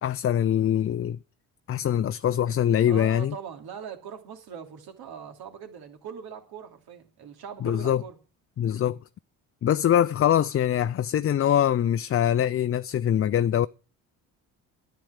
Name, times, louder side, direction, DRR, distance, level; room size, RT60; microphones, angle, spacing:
voice 1, 0.0-1.2 1.7-3.3 7.6-8.0 8.6-9.0 9.6-13.7, left 10 dB, 35° left, 0.5 m, -23 dB
voice 2, 2.9-8.2, right 7 dB, 65° right, 2.9 m, -41 dB
10.5 x 9.4 x 6.4 m
supercardioid pair, 65°, 40 cm